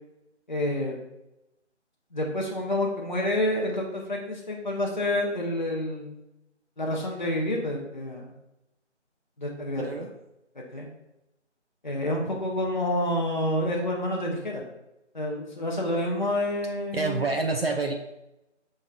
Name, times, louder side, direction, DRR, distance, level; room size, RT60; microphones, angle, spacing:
voice 1, 0.5-1.0 2.1-6.2 6.8-8.3 9.4-10.1 10.7-10.9 11.8-14.6 15.1-17.3, left 1 dB, 40° left, 0 dB, 0.6 m, -28 dB
voice 2, 9.8-10.1 16.9-18.0, right 3 dB, 55° right, 3 dB, 0.4 m, -27 dB
5.2 x 3.5 x 2.3 m, 0.90 s
figure-of-eight pair, 160°, 36 cm